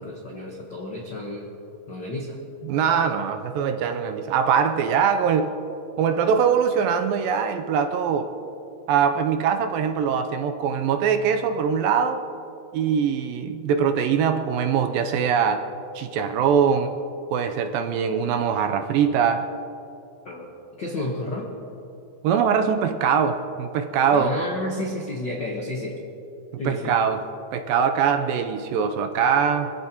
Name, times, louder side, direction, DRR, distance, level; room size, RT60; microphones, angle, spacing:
voice 1, 0.0-1.5 1.9-2.4 20.2-20.5 20.8-21.5 24.1-26.0 26.6-27.0, left 1 dB, 90° left, -1 dB, 0.9 m, -31 dB
voice 2, 2.6-5.5 6.0-8.3 8.9-12.2 12.7-15.7 16.0-16.9 17.3-19.5 22.2-24.3 26.7-27.2 27.5-29.7, right 7 dB, 80° right, 7 dB, 2.3 m, -22 dB
25.0 x 15.0 x 2.9 m, 2.7 s
omnidirectional pair, 4.3 m